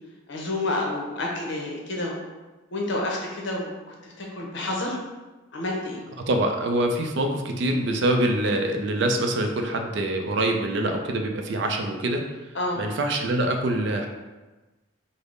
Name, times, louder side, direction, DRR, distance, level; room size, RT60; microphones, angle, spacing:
voice 1, 0.3-2.2 2.7-5.0 5.5-6.0 12.5-12.8, left 2 dB, 60° left, -1 dB, 0.7 m, -29 dB
voice 2, 6.3-12.2 12.8-14.1, right 1 dB, 60° right, 4 dB, 0.4 m, -25 dB
3.4 x 2.0 x 3.7 m, 1.2 s
head